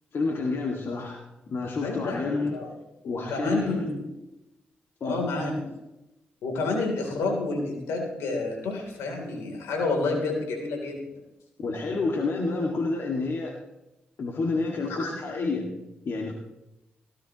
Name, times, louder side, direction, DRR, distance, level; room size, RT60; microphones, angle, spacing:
voice 1, 0.1-1.2 1.5-2.5 3.1-3.9 5.0-5.2 11.6-13.6 14.2-15.7 16.1-16.3, left 3 dB, 60° left, 0 dB, 2.0 m, -29 dB
voice 2, 1.8-2.1 2.5-2.7 3.0-4.0 5.0-5.6 6.4-11.0 14.9-15.1, left 3 dB, 85° left, 2 dB, 3.2 m, -29 dB
17.5 x 14.0 x 3.0 m, 0.95 s
supercardioid pair, 40°, 4 cm